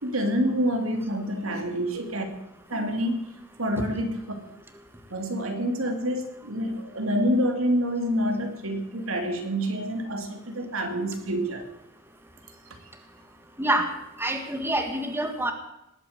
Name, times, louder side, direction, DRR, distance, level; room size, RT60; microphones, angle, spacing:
voice 1, 0.0-2.3 2.7-3.3 3.6-4.2 5.1-11.6, equal, 80° right, 5 dB, 2.7 m, -27 dB
voice 2, 13.6-13.9 14.2-15.5, right 1 dB, 10° right, 5 dB, 1.6 m, -26 dB
19.0 x 8.9 x 7.9 m, 0.84 s
head